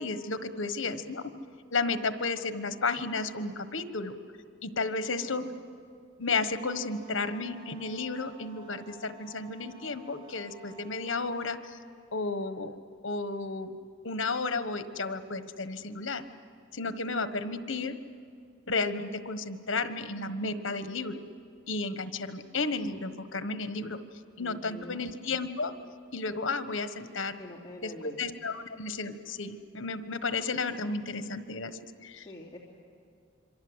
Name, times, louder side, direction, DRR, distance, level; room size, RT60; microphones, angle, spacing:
voice 1, 0.0-1.3 1.7-4.1 4.6-5.4 6.2-11.8 12.1-12.8 13.0-13.8 14.0-16.2 16.7-17.9 18.7-21.2 21.7-24.0 24.4-25.7 26.1-27.4 27.8-32.3, left 3 dB, 75° left, 10 dB, 1.3 m, -33 dB
sound 1, 6.5-11.5, right 2 dB, 25° right, 2.6 m, -53 dB
voice 2, 24.4-25.1 27.4-28.2 32.2-32.6, left 1 dB, 20° left, -6 dB, 3.0 m, -46 dB
27.0 x 24.0 x 8.1 m, 2.3 s
head